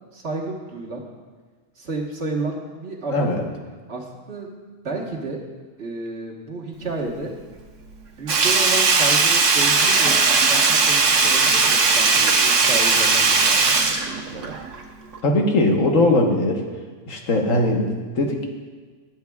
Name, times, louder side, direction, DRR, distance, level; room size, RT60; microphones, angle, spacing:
voice 1, 0.1-1.0 1.8-3.3 3.9-4.5 4.8-5.4 5.8-7.3 8.2-14.5, right 3 dB, 55° right, -2 dB, 1.6 m, -31 dB
voice 2, 3.1-3.5 15.2-16.6 17.1-18.4, left 2 dB, 85° left, 2 dB, 1.6 m, -20 dB
Sink (filling or washing), 8.3-14.8 15.1-15.2, right 4 dB, 70° right, 1.3 m, -18 dB
20.0 x 8.1 x 2.3 m, 1.4 s
omnidirectional pair, 1.3 m